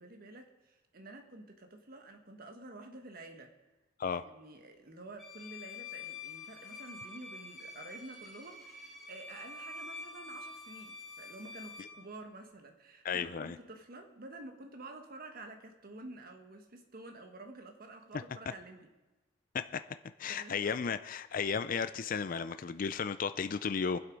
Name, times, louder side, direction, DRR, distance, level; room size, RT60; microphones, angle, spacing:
voice 1, 0.0-3.5 4.1-18.9 20.3-20.9, right 2 dB, 50° right, 5 dB, 1.4 m, -50 dB
Bowed string instrument, 5.2-12.0, left 3 dB, ahead, 2.9 m, -47 dB
voice 2, 13.0-13.6 19.5-19.8 20.2-24.0, left 6 dB, 45° left, 11 dB, 0.4 m, -34 dB
23.5 x 7.9 x 5.2 m, 1.1 s
head